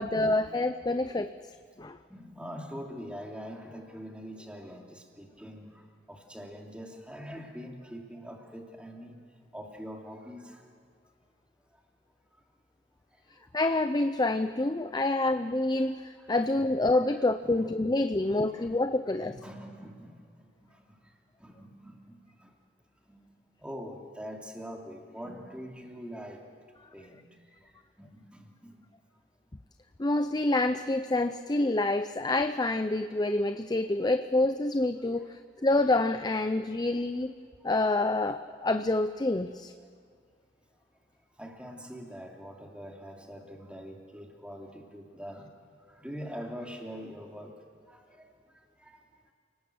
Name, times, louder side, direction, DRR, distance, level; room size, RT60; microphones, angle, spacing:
voice 1, 0.0-1.3 1.8-2.0 13.5-19.3 30.0-37.3 37.6-39.7, left 2 dB, 25° left, 9 dB, 0.6 m, -27 dB
voice 2, 2.1-5.8 6.1-9.2 9.5-10.6 15.2-15.3 16.5-16.7 17.1-17.7 18.1-18.9 19.2-20.2 20.6-21.0 21.4-22.1 22.4-22.5 23.1-23.2 23.6-26.4 26.9-27.2 27.6-27.7 28.0-28.8 33.9-34.1 35.2-35.3 41.4-45.5 45.9-47.5 47.9-48.3 48.8-49.0, equal, 5° right, 0 dB, 3.0 m, -44 dB
29.0 x 19.5 x 8.0 m, 2.1 s
head